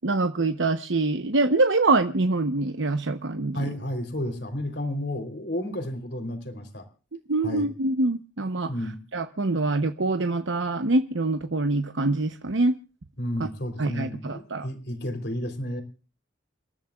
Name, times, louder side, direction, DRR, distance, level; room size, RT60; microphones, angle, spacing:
voice 1, 0.0-3.6 7.3-8.7 9.1-12.7 13.4-13.5 13.8-14.7, right 2 dB, 75° right, 0.9 m, -24 dB
voice 2, 3.5-6.8 7.4-7.7 8.7-9.0 13.2-15.8, left 1 dB, 60° left, 3.5 m, -32 dB
29.0 x 14.5 x 2.4 m
head